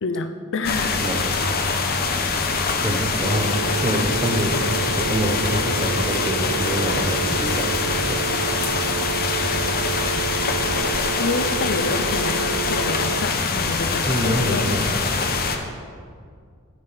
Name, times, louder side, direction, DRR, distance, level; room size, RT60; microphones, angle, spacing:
voice 1, 0.0-1.0 11.2-14.6, left 3 dB, 60° left, 9 dB, 0.6 m, -28 dB
sound 1, 0.6-15.6, left 4 dB, 45° left, 1.0 m, -24 dB
voice 2, 2.8-8.3 14.0-15.0, equal, 15° right, 4 dB, 0.9 m, -26 dB
sound 2, 3.2-13.2, right 10 dB, 70° right, 0.5 m, -31 dB
13.5 x 9.6 x 4.1 m, 2.1 s
head